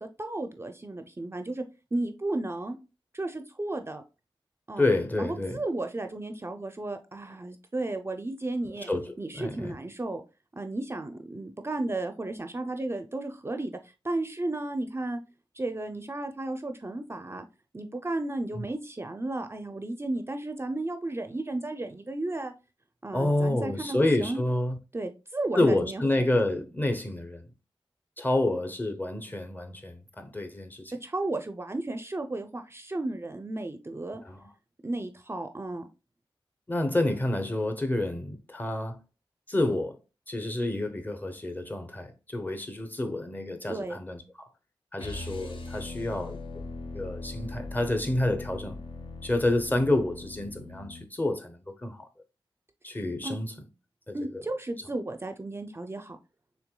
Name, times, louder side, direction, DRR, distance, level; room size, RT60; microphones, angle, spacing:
voice 1, 0.0-1.6 1.9-2.8 3.1-4.0 4.7-4.8 5.2-8.9 9.2-10.2 10.5-13.7 14.0-15.2 15.5-17.5 17.7-22.5 23.0-24.4 24.9-26.3 30.9-34.2 34.8-35.9 43.7-44.0 53.2-53.4 54.1-56.2, right 2 dB, 25° right, 0.5 m, -33 dB
voice 2, 4.8-5.6 8.9-9.0 9.3-9.8 18.6-18.7 23.1-24.8 25.5-27.5 28.2-30.9 34.2-34.4 36.7-39.0 39.5-40.0 40.3-44.2 44.9-46.4 46.9-48.8 49.2-52.1 52.8-53.5 54.1-54.4, left 1 dB, 20° left, 0.8 m, -28 dB
sound 1, 45.0-51.1, left 2 dB, 65° left, 0.9 m, -40 dB
6.0 x 3.4 x 2.2 m
wide cardioid pair, 90°, 9 cm